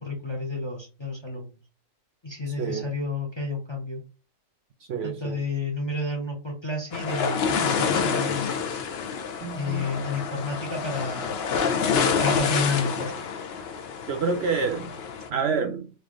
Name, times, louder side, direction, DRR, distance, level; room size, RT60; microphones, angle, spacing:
voice 1, 0.0-1.6 2.2-4.0 5.0-8.8 9.5-11.4 12.2-13.1, left 3 dB, 25° left, 0.6 m, -30 dB
voice 2, 2.5-2.9 4.8-5.4 9.4-9.9 14.1-15.0 15.3-15.9, right 5 dB, 65° right, 0.7 m, -28 dB
sound 1, 6.9-15.3, left 6 dB, 60° left, 0.7 m, -27 dB
3.3 x 2.6 x 3.6 m
omnidirectional pair, 1.4 m